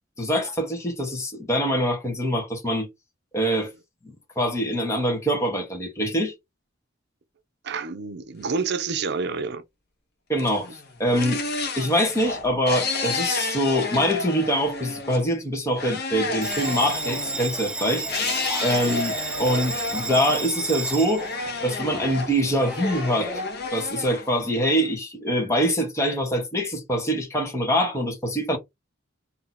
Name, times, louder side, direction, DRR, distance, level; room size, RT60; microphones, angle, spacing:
voice 1, 0.2-2.9 3.3-3.7 4.0-6.3 10.3-11.4 11.8-18.1 18.6-21.2 21.6-23.4 23.7-28.6, equal, 15° left, 1.0 m, -24 dB
voice 2, 7.6-9.6 18.8-19.1, right 4 dB, 60° right, 0.6 m, -28 dB
sound 1, 10.4-15.3 15.8-17.5 18.1-20.8 21.2-24.9, left 3 dB, 55° left, 0.8 m, -31 dB
Bell, 16.4-23.4, right 3 dB, 5° right, 0.3 m, -33 dB
2.8 x 2.7 x 3.9 m
head